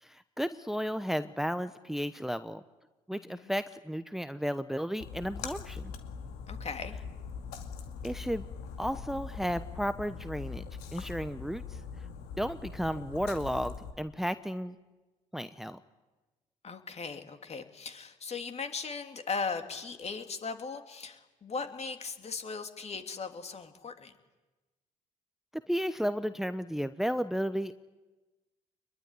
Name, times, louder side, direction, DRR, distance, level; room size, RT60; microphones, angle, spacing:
voice 1, 0.0-2.6 3.1-5.9 8.0-8.4 8.8-10.7 10.9-11.8 12.4-14.8 15.3-15.8 25.7-27.9, equal, ahead, 12 dB, 1.0 m, -33 dB
voice 2, 3.1-3.5 6.5-7.0 16.6-24.1, left 4 dB, 40° left, 6 dB, 2.9 m, -38 dB
Splash splatter, 5.0-13.9, left 6 dB, 75° left, 2.3 m, -42 dB
24.5 x 21.5 x 9.8 m, 1.1 s
hypercardioid pair, 55°, 17 cm